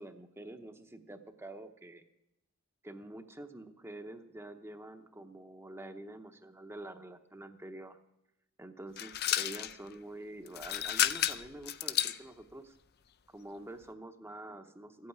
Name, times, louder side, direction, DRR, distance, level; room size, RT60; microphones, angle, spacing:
voice 1, 0.0-2.0 2.8-8.0 8.6-12.8 13.3-15.1, right 1 dB, 10° right, 7 dB, 0.8 m, -47 dB
sound 1, 9.0-9.8 10.5-12.2, left 11 dB, 50° left, 0.5 m, -31 dB
14.5 x 8.7 x 9.4 m, 0.84 s
head